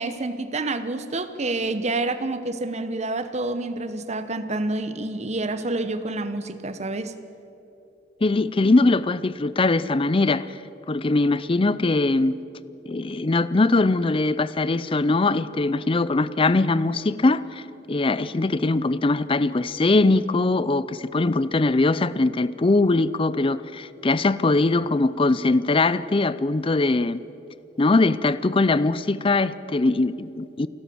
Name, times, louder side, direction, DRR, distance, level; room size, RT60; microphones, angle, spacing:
voice 1, 0.0-7.2, right 2 dB, 35° right, 1.0 m, -28 dB
voice 2, 8.2-10.5 10.9-12.4 12.9-17.6 17.9-27.2 27.8-30.7, left 2 dB, 30° left, 0.5 m, -21 dB
28.5 x 12.5 x 7.7 m
head